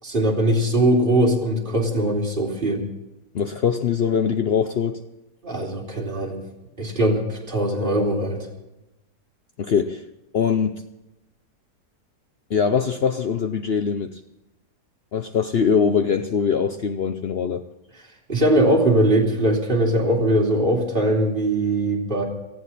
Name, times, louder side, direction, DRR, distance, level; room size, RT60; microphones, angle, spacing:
voice 1, 0.0-2.8 5.4-6.4 6.8-8.5 18.3-22.2, right 1 dB, 30° right, -2 dB, 3.0 m, -21 dB
voice 2, 3.3-5.0 9.6-10.0 10.3-10.8 12.5-14.2 15.1-17.6, left 6 dB, 60° left, 8 dB, 0.6 m, -22 dB
18.5 x 14.5 x 4.2 m, 0.98 s
omnidirectional pair, 1.7 m